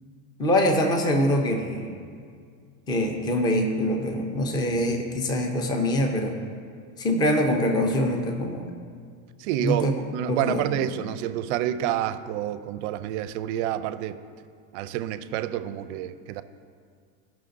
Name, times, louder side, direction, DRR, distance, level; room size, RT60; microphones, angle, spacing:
voice 1, 0.4-1.9 2.9-6.3 7.0-8.7 9.6-9.9 10.3-10.9, left 1 dB, 10° left, 4 dB, 0.4 m, -24 dB
voice 2, 9.4-14.2 14.7-16.4, right 11 dB, 50° right, 12 dB, 0.5 m, -28 dB
15.5 x 5.8 x 2.5 m, 2.1 s
supercardioid pair, 130°, 46 cm